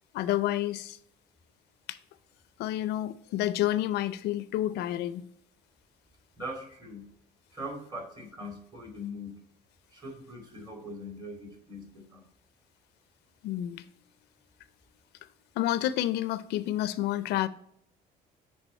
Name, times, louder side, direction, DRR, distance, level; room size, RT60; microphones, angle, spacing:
voice 1, 0.1-1.0 1.9-2.0 2.6-5.2 13.4-13.9 15.6-17.5, left 13 dB, 80° left, 0.4 m, -29 dB
voice 2, 6.4-7.1 7.5-9.4 9.9-12.3, equal, 25° right, 2.7 m, -41 dB
8.2 x 3.3 x 4.2 m
cardioid pair, 110°, 17 cm